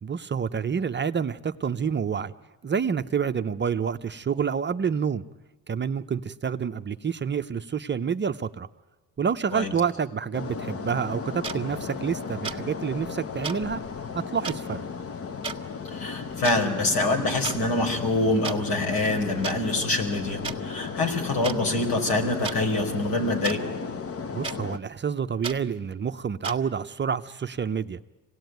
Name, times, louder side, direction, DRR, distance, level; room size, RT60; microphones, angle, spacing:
voice 1, 0.0-2.3 2.6-5.2 5.7-8.7 9.2-13.8 14.1-14.9 24.3-28.0, right 6 dB, 30° right, 9 dB, 0.7 m, -28 dB
sound 1, 10.3-24.8, left 5 dB, 40° left, 1.1 m, -35 dB
sound 2, 11.4-11.6 12.4-12.6 13.4-13.6 14.4-14.6 15.4-15.6 16.3-16.6 17.4-17.6 18.4-18.6 19.4-19.6 20.4-20.6 21.4-21.6 22.4-22.6 23.4-23.6 24.4-24.6 25.4-25.6 26.4-26.6, right 5 dB, 15° right, 1.7 m, -32 dB
voice 2, 15.8-23.6, left 2 dB, 70° left, 3 dB, 4.9 m, -25 dB
26.0 x 18.0 x 9.3 m, 1.2 s
cardioid pair, 105°, 37 cm